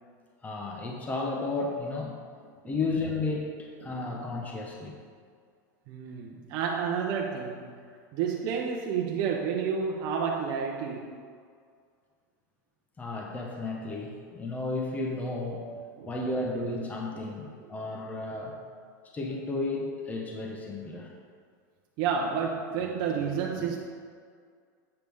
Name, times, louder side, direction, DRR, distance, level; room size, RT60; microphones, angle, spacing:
voice 1, 0.4-2.1 2.6-5.0 13.0-15.7 16.1-18.6 19.1-21.1, left 2 dB, 15° left, 0 dB, 0.9 m, -33 dB
voice 2, 3.8-4.2 5.9-7.7 8.1-11.1 16.0-16.1 17.1-17.3 22.0-23.8, right 6 dB, 50° right, 0 dB, 0.8 m, -30 dB
7.9 x 6.8 x 3.5 m, 2.1 s
supercardioid pair, 125°, 10 cm